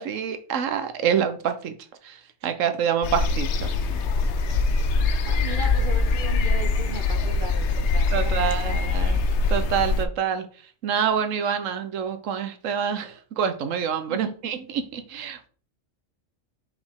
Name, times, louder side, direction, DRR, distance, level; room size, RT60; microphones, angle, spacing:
voice 1, 0.0-1.8 2.0-3.7 8.1-9.2 9.5-10.5 10.8-15.5, right 8 dB, 75° right, 1.1 m, -27 dB
sound 1, 3.0-10.0, left 3 dB, 65° left, 0.8 m, -23 dB
voice 2, 5.2-9.0 14.1-14.4, right 4 dB, 50° right, 0.8 m, -37 dB
5.6 x 5.0 x 3.5 m
omnidirectional pair, 1.4 m